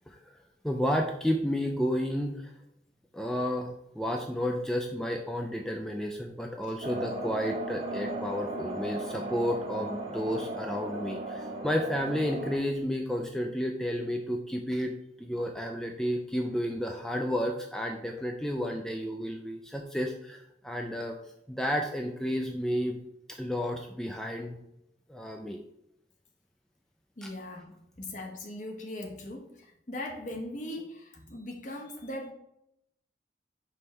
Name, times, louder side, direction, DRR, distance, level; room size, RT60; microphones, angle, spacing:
voice 1, 0.1-0.4 0.6-2.5 3.1-14.9 15.2-21.1 21.5-23.0 23.3-24.6 25.1-25.6 27.2-27.3, equal, 5° left, 2 dB, 0.4 m, -31 dB
sound 1, 6.8-12.6, right 1 dB, 35° right, 0.8 m, -36 dB
voice 2, 27.2-27.7 28.0-32.3, left 1 dB, 45° left, 1 dB, 1.0 m, -39 dB
5.3 x 3.2 x 5.5 m, 0.79 s
head